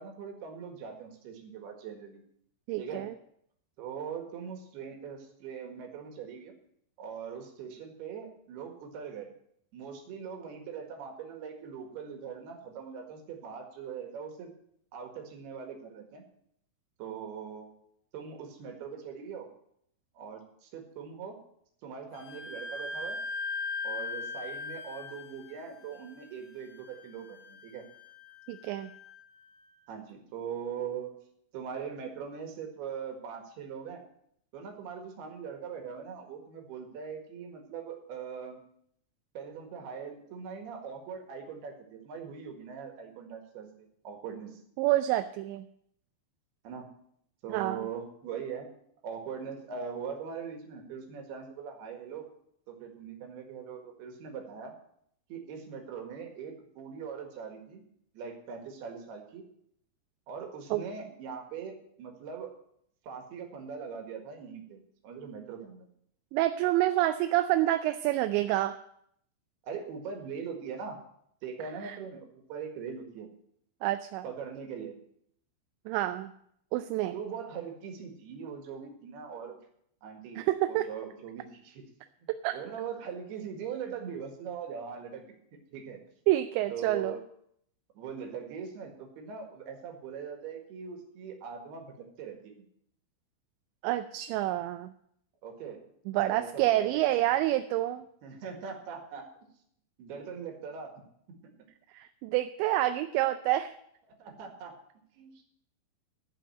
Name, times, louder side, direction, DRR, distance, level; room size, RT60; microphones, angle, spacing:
voice 1, 0.0-2.2 2.8-3.1 3.8-6.5 7.0-9.3 9.7-14.5 14.9-16.2 17.0-17.7 18.1-19.5 20.2-21.4 21.8-23.2 23.8-27.8 29.9-31.1 31.5-34.0 34.5-38.6 39.4-44.6 46.6-46.9 47.4-48.7 49.0-52.3 52.7-54.7 55.3-57.8 58.1-59.4 60.3-62.5 63.0-65.9 69.6-71.0 71.4-73.3 74.2-75.0 77.1-79.6 80.0-81.8 82.2-85.3 85.7-86.0 86.7-87.2 88.0-92.6 95.4-95.8 96.3-97.0 98.2-99.3 100.0-101.0 101.4-101.5 104.2-104.7 105.2-105.4, right 6 dB, 65° right, 3 dB, 3.5 m, -41 dB
voice 2, 2.7-3.1 28.5-28.9 44.8-45.7 47.5-47.9 60.7-60.8 66.3-68.8 71.8-72.0 73.8-74.3 75.9-76.3 76.7-77.2 80.4-80.9 82.4-82.6 86.3-87.2 93.8-94.9 96.1-98.1 101.9-103.8, right 15 dB, 85° right, 9 dB, 2.7 m, -28 dB
Wind instrument woodwind instrument, 22.1-29.6, left 3 dB, 85° left, 4.4 m, -40 dB
14.0 x 5.5 x 8.7 m, 0.70 s
omnidirectional pair, 5.4 m